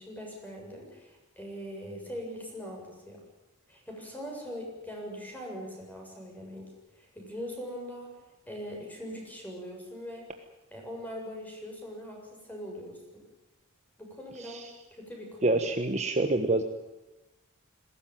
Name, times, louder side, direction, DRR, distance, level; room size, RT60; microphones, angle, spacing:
voice 1, 0.0-3.2 3.7-8.2 8.5-10.3 10.7-13.3 14.0-14.6 14.9-15.6, equal, 10° left, 0 dB, 7.4 m, -41 dB
voice 2, 15.4-16.6, right 2 dB, 30° right, 6 dB, 1.3 m, -27 dB
20.5 x 17.5 x 9.3 m, 1.0 s
head